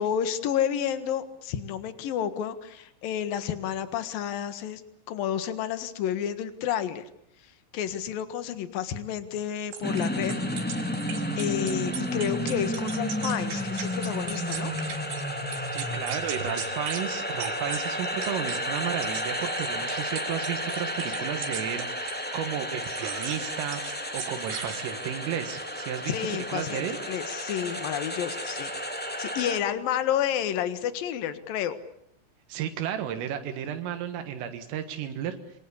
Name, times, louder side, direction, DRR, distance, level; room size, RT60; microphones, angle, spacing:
voice 1, 0.0-4.8 5.1-7.1 7.4-10.3 11.4-14.7 26.1-28.7 29.2-31.8, left 9 dB, 60° left, 11 dB, 2.6 m, -30 dB
sound 1, 9.7-15.2 15.5-17.1 17.4-22.3 22.8-23.4 23.7-25.2, right 7 dB, 65° right, 5.6 m, -38 dB
sound 2, 9.8-29.6, equal, 5° left, 0.9 m, -32 dB
voice 2, 15.7-26.2 26.5-27.0 32.5-35.4, right 9 dB, 80° right, 7 dB, 4.2 m, -33 dB
26.5 x 24.0 x 8.5 m, 0.74 s
omnidirectional pair, 5.9 m